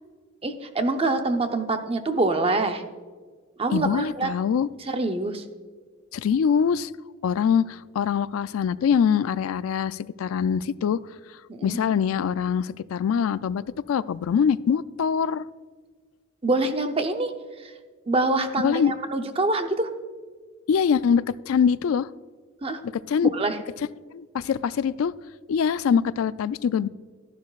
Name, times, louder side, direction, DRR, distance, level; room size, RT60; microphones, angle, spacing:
voice 1, 0.4-2.8 3.6-4.3 4.9-5.4 11.5-11.8 16.4-17.3 17.6-17.7 18.1-19.9 22.6-22.8 23.2-23.6, right 2 dB, 25° right, 7 dB, 0.6 m, -25 dB
voice 2, 3.7-4.7 6.1-6.9 7.2-11.0 11.6-13.6 13.9-15.5 18.6-18.9 20.7-22.1 23.1-23.3 24.1-25.1 25.5-26.9, left 7 dB, 80° left, 16 dB, 0.3 m, -23 dB
12.5 x 11.5 x 2.4 m, 1.5 s
head